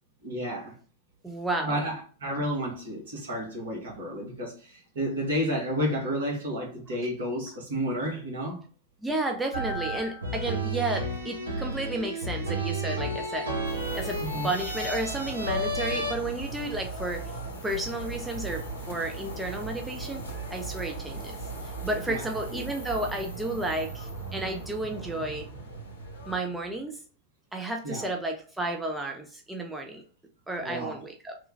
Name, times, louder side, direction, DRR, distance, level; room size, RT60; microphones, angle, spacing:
voice 1, 0.2-0.7 1.6-8.6 14.2-14.5 22.1-22.2 22.5-22.6 27.8-28.1 30.6-31.0, equal, 65° right, 1.3 m, -31 dB
voice 2, 1.2-1.8 9.0-13.7 13.9-17.3 17.6-20.2 20.5-21.4 21.8-25.7 26.3-27.0 27.5-30.0 30.5-31.4, right 2 dB, 10° right, 0.5 m, -32 dB
sound 1, 9.5-16.1, right 1 dB, 80° right, 0.7 m, -32 dB
sound 2, 13.6-26.4, right 3 dB, 75° left, 0.8 m, -38 dB
3.1 x 2.2 x 3.2 m
figure-of-eight pair, 90°, 0 cm